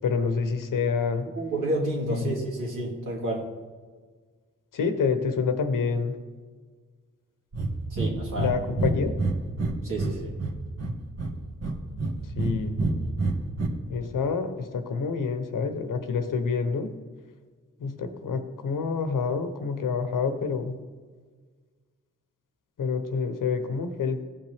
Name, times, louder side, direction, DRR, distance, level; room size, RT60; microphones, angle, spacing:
voice 1, 0.0-1.3 2.1-2.4 4.7-6.2 8.3-9.2 12.4-12.8 13.9-16.9 17.8-20.8 22.8-24.2, left 5 dB, 75° left, 9 dB, 1.0 m, -27 dB
voice 2, 1.4-3.5 7.9-8.5 9.8-10.3, right 1 dB, 75° right, -4 dB, 2.8 m, -30 dB
Breathing, 7.5-7.7 8.0-8.1 8.4-8.5 8.8-10.1 10.4-11.3 11.6-12.5 12.8-13.7, right 2 dB, 50° right, 1.6 m, -26 dB
15.5 x 5.5 x 3.5 m, 1.5 s
cardioid pair, 70°, 32 cm